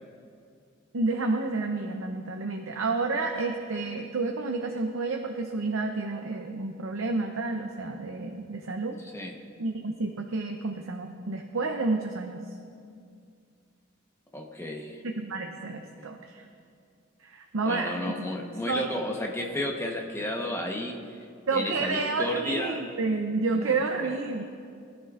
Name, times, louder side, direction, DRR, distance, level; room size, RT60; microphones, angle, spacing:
voice 1, 0.9-9.0 9.6-12.4 15.1-16.5 17.2-18.1 18.7-18.9 21.5-24.4, right 3 dB, 80° right, 3 dB, 0.7 m, -30 dB
voice 2, 14.3-15.0 17.6-21.0 21.5-22.8 23.5-24.2, left 1 dB, 15° left, 0 dB, 1.1 m, -32 dB
20.5 x 11.0 x 2.5 m, 2.3 s
head